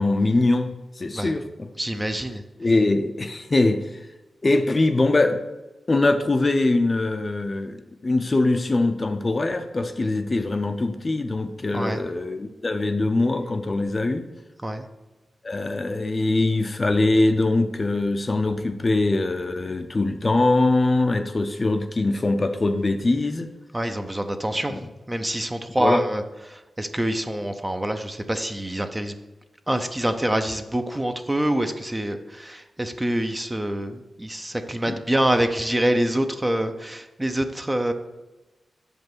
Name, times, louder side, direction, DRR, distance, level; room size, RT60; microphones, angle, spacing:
voice 1, 0.0-1.7 2.6-4.0 4.4-5.4 5.9-14.3 15.4-23.5 24.7-24.8 25.8-26.0 34.9-35.0, left 2 dB, 30° left, 7 dB, 0.6 m, -22 dB
voice 2, 1.8-2.4 11.7-12.0 14.6-14.8 23.7-24.7 25.1-26.2 26.5-29.1 29.7-37.9, right 1 dB, 15° right, 7 dB, 0.6 m, -26 dB
7.0 x 5.3 x 6.1 m, 1.1 s
wide cardioid pair, 100°, 0 cm